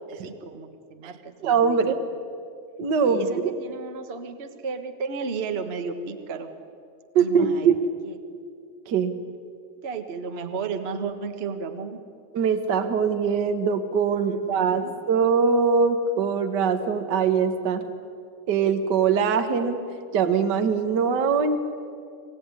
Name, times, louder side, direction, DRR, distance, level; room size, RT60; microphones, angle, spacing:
voice 1, 0.1-1.9 3.0-6.5 7.2-7.8 8.0-8.2 9.8-12.0 14.2-14.9, right 5 dB, 75° right, 7 dB, 0.5 m, -34 dB
voice 2, 1.4-2.0 2.8-3.5 7.1-7.8 8.9-9.2 12.3-17.8 18.5-19.8 20.1-21.6, right 6 dB, 60° right, 8 dB, 1.1 m, -22 dB
25.5 x 16.0 x 9.8 m, 2.3 s
omnidirectional pair, 3.5 m